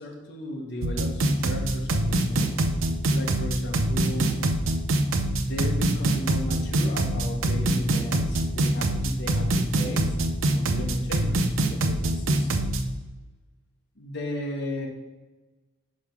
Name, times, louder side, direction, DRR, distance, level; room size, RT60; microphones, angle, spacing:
voice 1, 0.0-2.6 3.1-4.5 5.4-10.2 10.5-12.7 14.0-14.9, left 1 dB, 55° left, 0 dB, 1.2 m, -35 dB
sound 1, 0.8-12.8, right 1 dB, 80° right, 0.6 m, -24 dB
5.3 x 4.9 x 5.9 m, 1.2 s
head